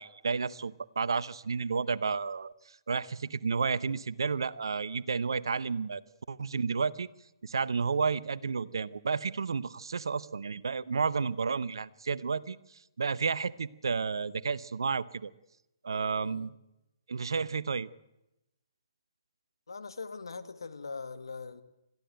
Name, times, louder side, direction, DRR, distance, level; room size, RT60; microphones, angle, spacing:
voice 1, 0.0-6.0 6.3-7.1 7.4-12.6 13.0-15.3 15.8-16.5 17.1-17.9, right 5 dB, 70° right, 0.8 m, -31 dB
voice 2, 16.2-16.5 19.7-21.6, left 4 dB, 75° left, 1.8 m, -42 dB
21.5 x 14.5 x 9.0 m
figure-of-eight pair, 130°, 2 cm